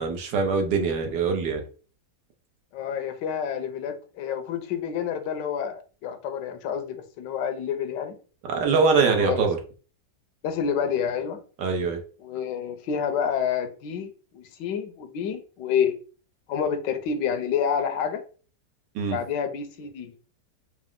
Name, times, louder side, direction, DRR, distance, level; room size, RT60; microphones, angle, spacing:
voice 1, 0.0-1.6 8.5-9.6 11.6-12.0 18.9-19.2, right 5 dB, 75° right, 1.5 m, -23 dB
voice 2, 2.7-8.2 9.1-9.4 10.4-11.4 12.2-15.9 16.5-18.2 19.1-20.1, left 7 dB, 90° left, 1.3 m, -28 dB
4.8 x 2.1 x 3.7 m
omnidirectional pair, 1.9 m